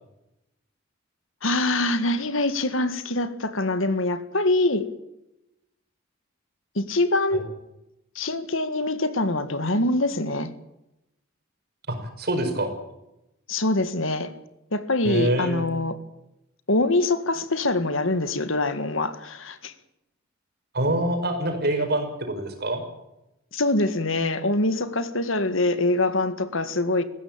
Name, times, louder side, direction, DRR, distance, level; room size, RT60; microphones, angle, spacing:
voice 1, 1.4-4.9 6.8-7.4 8.2-10.5 13.5-14.3 14.7-16.0 16.7-19.7 23.5-27.0, left 2 dB, 70° left, 1.9 m, -24 dB
voice 2, 11.9-12.7 15.0-15.7 20.7-22.8, right 1 dB, 50° right, 5.5 m, -25 dB
20.5 x 16.5 x 8.8 m
head